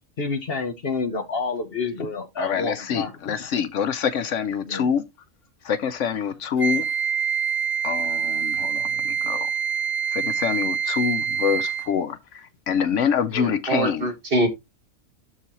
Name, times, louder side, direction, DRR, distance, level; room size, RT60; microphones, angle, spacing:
voice 1, 0.2-3.1 4.6-4.9, left 4 dB, 50° left, 1.1 m, -28 dB
voice 2, 2.4-5.0 5.6-6.9 7.8-9.5 10.1-14.1, left 7 dB, 70° left, 0.9 m, -26 dB
Wind instrument woodwind instrument, 6.6-12.0, right 7 dB, 15° left, 2.0 m, -25 dB
voice 3, 13.3-14.5, right 1 dB, 40° right, 1.9 m, -24 dB
12.5 x 4.1 x 2.9 m
omnidirectional pair, 1.4 m